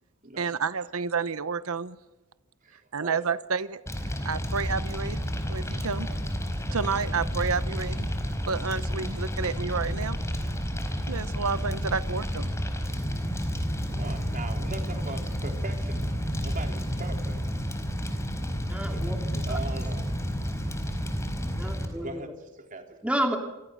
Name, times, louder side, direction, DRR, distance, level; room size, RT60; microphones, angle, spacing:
voice 1, 0.4-2.0 2.9-3.8 4.2-5.2 5.5-6.1 6.7-8.1 8.4-10.2 11.1-12.5, right 5 dB, 80° right, 14 dB, 0.9 m, -30 dB
voice 2, 2.6-3.2 13.6-17.4 18.9-20.2 22.0-23.0, right 3 dB, 40° right, 4 dB, 3.6 m, -41 dB
Fire, 3.9-21.9, equal, 15° left, 4.6 m, -30 dB
voice 3, 18.7-19.2 19.5-19.6 21.5-22.2 23.0-23.4, right 1 dB, 5° right, 3 dB, 2.8 m, -30 dB
27.5 x 24.5 x 6.5 m, 1.1 s
head